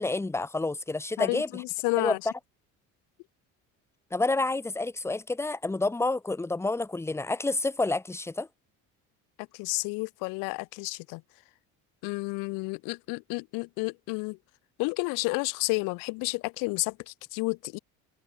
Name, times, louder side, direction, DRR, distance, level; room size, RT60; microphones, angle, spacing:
voice 1, 0.0-1.6 2.0-2.2 4.1-8.5, left 2 dB, 10° left, 3.2 m, -29 dB
voice 2, 1.2-2.2 9.5-11.2 12.0-14.4 14.8-17.8, left 29 dB, 85° left, 2.8 m, -31 dB
cardioid pair, 165°, 32 cm